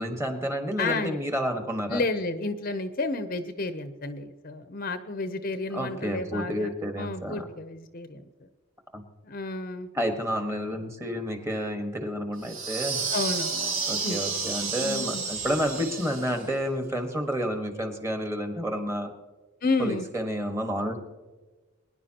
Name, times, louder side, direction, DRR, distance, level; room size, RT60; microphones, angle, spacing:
voice 1, 0.0-2.0 5.7-7.5 8.9-9.0 9.9-13.1 13.9-19.1 19.8-21.0, equal, 10° right, 5 dB, 1.4 m, -30 dB
voice 2, 0.8-1.2 1.9-6.7 7.0-8.5 9.2-9.9 13.1-14.2 14.8-15.2 19.6-20.0, left 3 dB, 40° left, 9 dB, 0.6 m, -31 dB
sound 1, 12.4-16.5, right 4 dB, 60° right, 2.6 m, -31 dB
23.0 x 10.5 x 2.9 m, 1.2 s
head